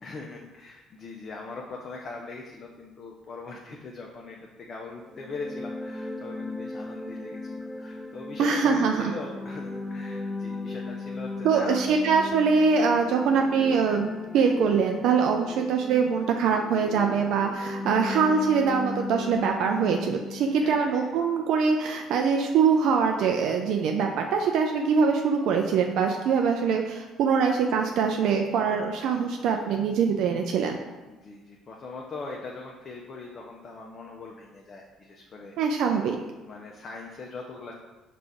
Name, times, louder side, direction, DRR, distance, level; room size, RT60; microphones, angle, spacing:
voice 1, 0.0-4.4 4.7-12.1 12.5-12.7 19.7-20.0 20.5-21.2 31.1-35.8 36.4-37.7, left 3 dB, 45° left, -1 dB, 0.6 m, -41 dB
sound 1, 5.1-20.8, left 3 dB, ahead, 0.6 m, -37 dB
voice 2, 8.4-9.1 11.4-30.8 35.6-36.2, right 5 dB, 70° right, 3 dB, 0.3 m, -23 dB
5.1 x 2.5 x 3.4 m, 1.1 s
hypercardioid pair, 60°, 0 cm